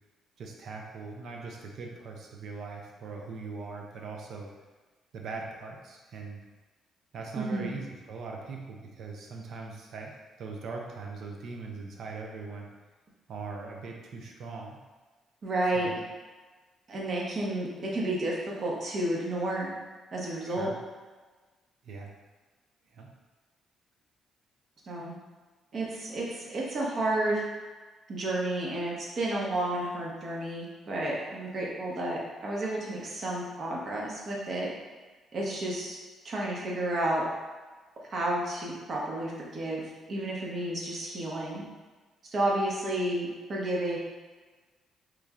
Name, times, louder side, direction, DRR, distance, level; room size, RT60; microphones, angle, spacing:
voice 1, 0.4-4.5 5.1-6.4 7.1-12.7 13.3-14.8 15.7-16.0 20.5-20.7 21.8-22.1 22.9-23.1, right 4 dB, 70° right, 0 dB, 0.4 m, -41 dB
voice 2, 7.3-7.7 15.4-15.9 16.9-19.7 20.1-20.7 24.8-25.2 25.7-27.4 28.1-34.7 35.3-36.0 36.2-37.2 38.1-41.6 42.3-44.0, right 1 dB, 50° right, -3 dB, 0.9 m, -31 dB
3.1 x 2.4 x 3.5 m, 1.3 s
cardioid pair, 90°, 0 cm